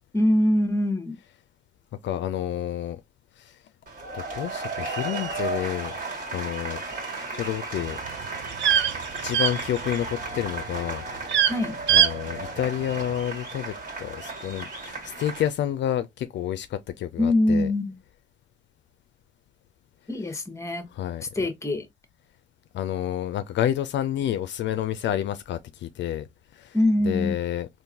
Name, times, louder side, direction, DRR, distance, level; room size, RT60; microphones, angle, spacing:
voice 1, 0.1-1.2 11.5-11.8 17.2-17.9 20.1-20.9 21.3-21.9 26.7-27.4, left 1 dB, 15° left, 0.9 m, -23 dB
voice 2, 2.0-3.0 3.4-3.6 4.1-5.9 6.3-6.8 7.3-8.0 8.6-8.8 9.2-11.0 11.9-17.7 20.9-21.2 22.7-26.3 26.5-26.8 27.0-27.7, left 11 dB, 65° left, 0.4 m, -29 dB
sound 1, 3.9-15.5, right 3 dB, 40° right, 1.8 m, -34 dB
sound 2, 7.8-10.2 10.5-10.9 11.2-11.5 11.9-12.1 12.4-12.5, right 9 dB, 70° right, 0.5 m, -22 dB
3.6 x 2.6 x 2.7 m
cardioid pair, 90°, 20 cm